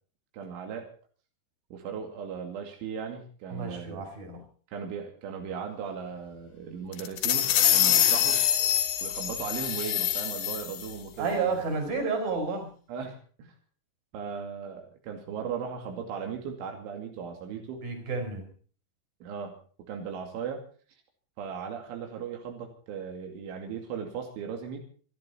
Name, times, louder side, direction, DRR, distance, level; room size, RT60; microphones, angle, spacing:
voice 1, 0.3-0.9 1.7-4.1 4.7-8.4 9.0-11.5 12.9-13.5 14.1-17.9 19.2-19.6 19.9-20.6 21.4-24.8, right 7 dB, 85° right, 3 dB, 4.9 m, -37 dB
voice 2, 3.5-4.4 11.2-12.7 17.5-18.5, right 4 dB, 50° right, 5 dB, 6.5 m, -31 dB
sound 1, 6.9-10.9, left 11 dB, 65° left, 3.4 m, -25 dB
27.5 x 11.5 x 4.4 m, 0.43 s
omnidirectional pair, 5.4 m